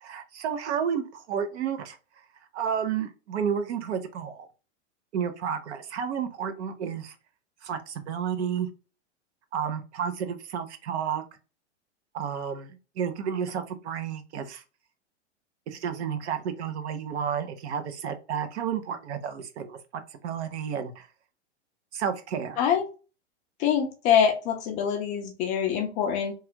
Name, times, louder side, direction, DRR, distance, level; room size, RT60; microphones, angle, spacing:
voice 1, 0.0-2.0 2.5-4.5 5.1-7.1 7.6-8.7 9.5-11.2 12.1-14.6 15.7-19.8 20.2-21.1 21.9-22.6, right 7 dB, 70° right, 9 dB, 0.8 m, -31 dB
voice 2, 23.6-26.3, left 8 dB, 25° left, 4 dB, 0.3 m, -24 dB
3.2 x 2.3 x 2.8 m, 0.33 s
hypercardioid pair, 140°, 35 cm